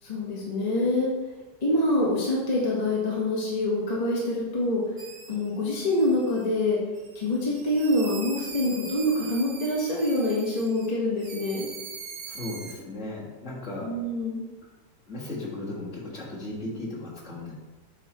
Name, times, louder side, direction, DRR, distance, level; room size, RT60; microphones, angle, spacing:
voice 1, 0.0-1.1 1.6-4.8 5.3-6.8 7.1-11.7 13.8-14.4, left 1 dB, 25° left, -5 dB, 1.3 m, -25 dB
sound 1, 5.0-5.5 5.9-6.5 7.0-10.9 11.2-12.7, right 5 dB, 60° right, 1.2 m, -42 dB
voice 2, 12.3-13.9 15.1-17.5, left 2 dB, 45° left, -6 dB, 2.1 m, -36 dB
8.1 x 5.9 x 3.1 m, 1.2 s
omnidirectional pair, 1.9 m